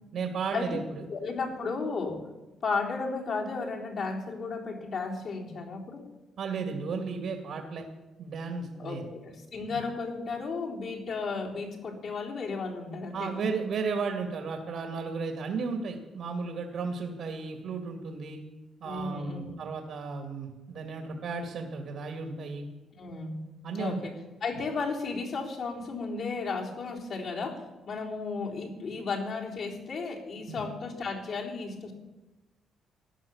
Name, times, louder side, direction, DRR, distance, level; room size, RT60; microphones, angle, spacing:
voice 1, 0.1-1.0 6.4-7.8 8.2-9.0 9.7-9.8 13.1-18.4 18.8-22.7 23.6-24.0 30.5-30.6, right 4 dB, 70° right, 4 dB, 2.3 m, -34 dB
voice 2, 1.1-2.3 2.6-6.0 8.8-13.5 18.8-19.6 23.0-23.5 23.7-24.1 24.4-31.9, left 4 dB, 60° left, -2 dB, 3.8 m, -34 dB
15.5 x 10.5 x 7.2 m, 1.1 s
cardioid pair, 90°, 0 cm